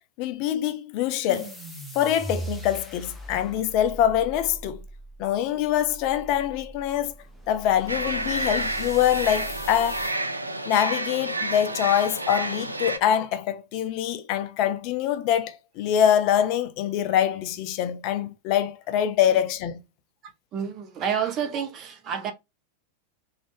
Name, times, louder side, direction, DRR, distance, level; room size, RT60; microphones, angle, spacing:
voice 1, 0.2-1.6 1.9-4.8 5.2-7.1 7.5-10.2 10.7-19.8, left 10 dB, 45° left, 0.4 m, -24 dB
sound 1, 1.3-10.2, right 1 dB, ahead, 0.9 m, -40 dB
sound 2, 7.9-13.0, right 1 dB, 85° right, 0.4 m, -30 dB
voice 2, 20.5-22.3, right 7 dB, 35° right, 0.7 m, -29 dB
3.7 x 2.4 x 3.3 m
figure-of-eight pair, 90°, 0 cm